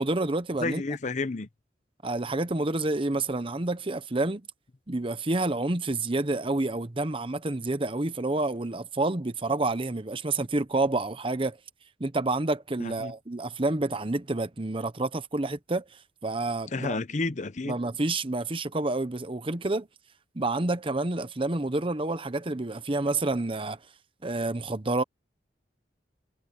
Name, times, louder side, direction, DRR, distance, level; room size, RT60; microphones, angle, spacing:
voice 1, 0.0-0.8 2.0-4.4 4.9-11.6 12.0-15.8 16.2-17.0 17.7-19.9 20.3-23.8 24.2-25.0, right 2 dB, 30° right, 0.9 m, -28 dB
voice 2, 0.6-1.5 12.8-13.1 16.7-17.8, left 3 dB, 40° left, 0.7 m, -31 dB
head